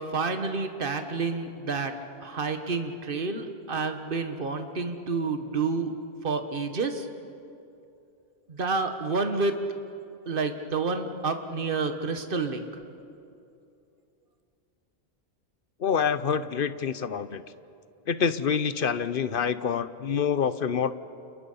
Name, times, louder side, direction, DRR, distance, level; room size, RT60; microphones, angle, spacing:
voice 1, 0.0-1.9 2.2-5.9 6.2-7.1 8.5-9.5 10.3-12.6, right 4 dB, 55° right, 7 dB, 1.6 m, -29 dB
voice 2, 15.8-17.4 18.1-20.9, left 7 dB, 60° left, 14 dB, 0.9 m, -26 dB
29.5 x 29.0 x 5.6 m, 2.7 s
omnidirectional pair, 1.1 m